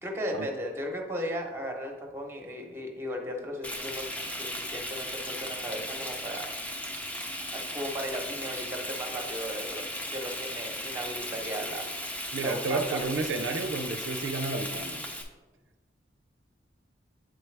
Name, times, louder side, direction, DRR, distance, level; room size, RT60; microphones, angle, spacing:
voice 1, 0.0-4.1 4.3-6.5 7.2-11.9 12.4-13.0, equal, 15° right, 2 dB, 0.9 m, -36 dB
Frying (food), 3.6-15.2, left 1 dB, 10° left, 0.6 m, -36 dB
voice 2, 12.3-15.0, right 3 dB, 80° right, 7 dB, 0.5 m, -31 dB
8.0 x 4.6 x 3.2 m, 1.2 s
head